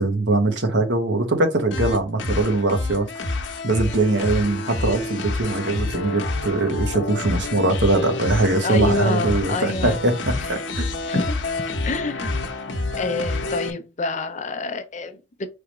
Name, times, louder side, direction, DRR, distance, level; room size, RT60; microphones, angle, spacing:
voice 1, 0.0-3.2 3.6-10.1 10.5-10.9, right 2 dB, 65° right, 1.1 m, -22 dB
sound 1, 1.7-13.7, left 2 dB, 75° left, 0.9 m, -28 dB
voice 2, 8.6-10.0 10.5-10.6 11.1-11.4 11.8-12.3 12.9-15.5, left 3 dB, 40° left, 0.6 m, -27 dB
4.8 x 3.5 x 3.0 m
head